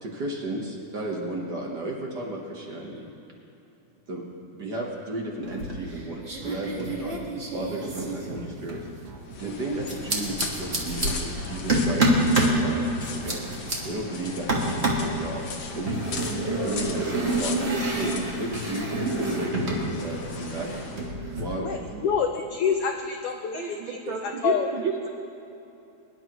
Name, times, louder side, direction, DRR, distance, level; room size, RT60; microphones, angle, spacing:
voice 1, 0.0-3.1 4.1-4.2 4.5-7.2 7.5-8.9 9.4-12.9 13.2-13.4 13.8-15.5 15.7-16.0 16.3-20.7 21.3-22.0 22.8-22.9, right 2 dB, 50° right, -1 dB, 1.2 m, -34 dB
sound 1, 5.4-6.0 6.2-8.9 9.9-11.1 11.7-12.6 13.0-13.8 14.5-15.1 15.9-19.9 20.1-21.4, right 2 dB, 30° right, 1.2 m, -27 dB
sound 2, 6.4-13.9, right 4 dB, 75° right, 2.5 m, -45 dB
sound 3, 9.2-21.2, left 3 dB, 60° left, 1.5 m, -36 dB
voice 2, 21.6-23.8 24.1-24.7, left 7 dB, 90° left, 4 dB, 1.2 m, -27 dB
voice 3, 23.5-25.1, right 6 dB, 90° right, 1 dB, 1.0 m, -31 dB
23.0 x 11.0 x 3.0 m, 2.9 s
omnidirectional pair, 3.4 m